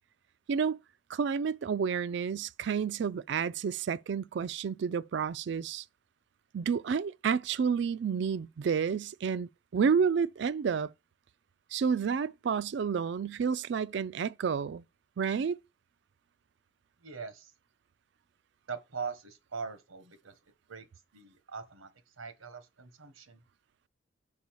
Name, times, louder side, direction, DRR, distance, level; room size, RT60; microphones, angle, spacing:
voice 1, 0.5-0.8 1.1-5.8 6.5-10.9 11.7-14.8 15.2-15.6, right 6 dB, 60° right, 0.3 m, -30 dB
voice 2, 17.0-17.5 18.7-20.4 20.7-20.9 21.1-23.4, right 5 dB, 90° right, 1.1 m, -42 dB
5.5 x 4.8 x 4.6 m
head